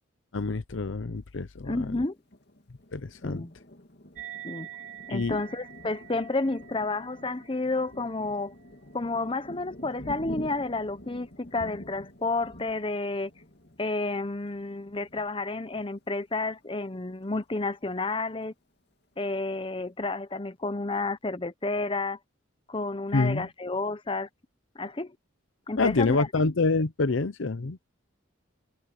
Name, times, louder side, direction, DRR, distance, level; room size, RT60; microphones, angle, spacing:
voice 1, 0.3-1.9 2.9-3.5 5.1-5.4 23.1-23.5 25.8-27.8, left 3 dB, 65° left, 0.7 m, -27 dB
voice 2, 1.7-2.2 3.2-3.5 4.4-4.7 5.1-8.5 8.9-13.3 13.8-18.5 19.2-22.2 22.7-24.3 24.7-25.1 25.7-26.3, left 3 dB, 25° left, 0.8 m, -31 dB
Thunder, 2.3-16.6 17.1-17.2 17.5-18.2, left 1 dB, 50° left, 2.5 m, -47 dB
sound 1, 4.1-11.0, right 11 dB, 40° right, 3.4 m, -48 dB
head